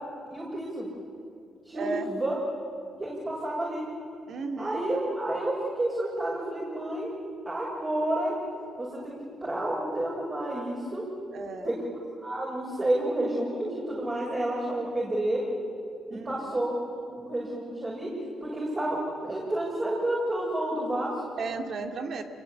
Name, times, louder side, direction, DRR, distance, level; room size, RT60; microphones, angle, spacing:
voice 1, 0.3-0.9 1.6-2.3 3.0-3.8 4.6-7.1 7.4-8.3 8.8-11.0 11.6-11.8 12.2-15.5 16.1-18.1 18.4-21.2, right 1 dB, 25° right, -4 dB, 6.8 m, -30 dB
voice 2, 1.7-2.1 4.3-4.9 11.3-11.7 16.1-16.6 21.4-22.2, right 4 dB, 60° right, 5 dB, 2.5 m, -35 dB
27.5 x 22.0 x 8.6 m, 2.4 s
cardioid pair, 90°, 0 cm